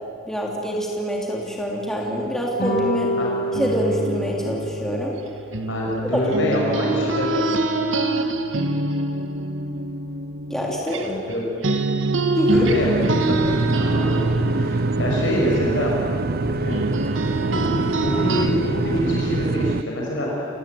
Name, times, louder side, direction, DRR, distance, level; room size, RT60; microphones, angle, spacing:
voice 1, 0.3-3.1 3.5-5.1 6.5-6.6 10.5-11.1 12.3-12.7, equal, ahead, -3 dB, 3.3 m, -25 dB
sound 1, 2.6-5.1, equal, 50° left, 6.0 m, -27 dB
sound 2, 3.5-11.3 11.6-18.5, right 2 dB, 75° right, 1.8 m, -25 dB
voice 2, 5.7-7.3 11.0-11.4 12.5-13.4 13.7-15.9 16.5-17.2 17.5-20.5, left 1 dB, 70° left, -3 dB, 6.2 m, -26 dB
sound 3, 12.5-19.8, right 3 dB, 50° right, 0.6 m, -25 dB
29.5 x 18.5 x 9.4 m, 2.4 s
head